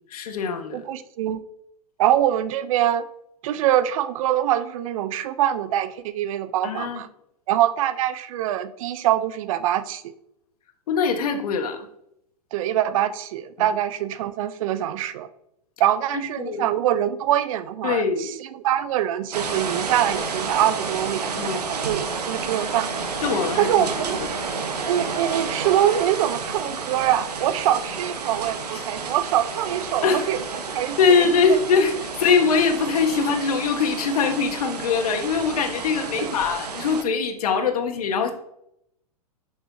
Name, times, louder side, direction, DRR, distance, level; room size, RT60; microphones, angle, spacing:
voice 1, 0.1-0.9 6.6-7.0 10.9-11.8 16.4-16.7 17.8-18.3 21.4-21.6 23.2-23.9 24.3-24.4 30.0-30.3 31.0-38.3, left 5 dB, 70° left, 6 dB, 1.4 m, -22 dB
voice 2, 0.7-1.4 2.0-3.1 3.4-7.1 7.5-10.1 12.5-15.3 15.8-22.9 23.6-24.2 24.9-31.3 36.2-36.3, right 11 dB, 60° right, 13 dB, 0.7 m, -24 dB
sound 1, 19.3-37.0, right 4 dB, 90° right, 1.3 m, -31 dB
11.0 x 6.2 x 2.8 m, 0.77 s
hypercardioid pair, 115°, 20 cm